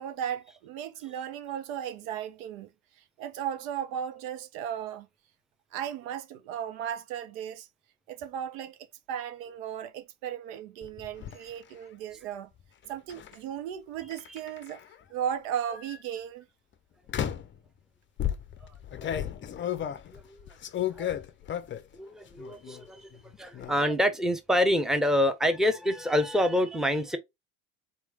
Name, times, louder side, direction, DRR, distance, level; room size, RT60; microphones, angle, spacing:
voice 1, 0.0-2.7 3.2-5.1 5.7-7.7 8.1-12.5 12.9-14.8 15.1-16.5, right 9 dB, 70° right, 0.8 m, -36 dB
sound 1, 10.8-11.4 13.1-13.3 14.1-14.9 15.7-16.0 17.1-17.6 18.2-21.9 22.3-22.9 23.1-23.7, left 10 dB, 25° left, 0.6 m, -34 dB
voice 2, 20.1-20.5 20.9-21.1 21.9-23.1 23.4-27.2, equal, ahead, 0.8 m, -26 dB
4.3 x 3.1 x 3.4 m
hypercardioid pair, 80°, 43 cm